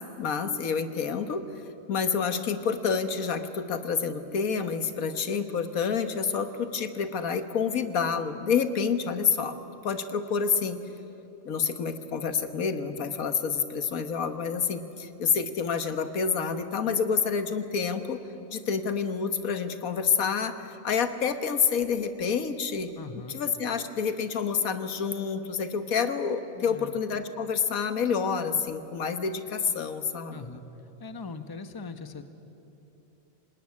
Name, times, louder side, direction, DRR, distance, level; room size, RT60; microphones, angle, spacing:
voice 1, 0.2-1.4 1.9-9.6 9.8-10.8 11.4-18.2 18.5-22.9 23.3-30.4, left 6 dB, 85° left, 9 dB, 1.7 m, -28 dB
voice 2, 23.0-23.4 26.5-27.0 30.3-30.6 31.0-32.2, left 4 dB, 20° left, 9 dB, 1.0 m, -40 dB
26.5 x 19.5 x 9.7 m, 2.9 s
omnidirectional pair, 1.4 m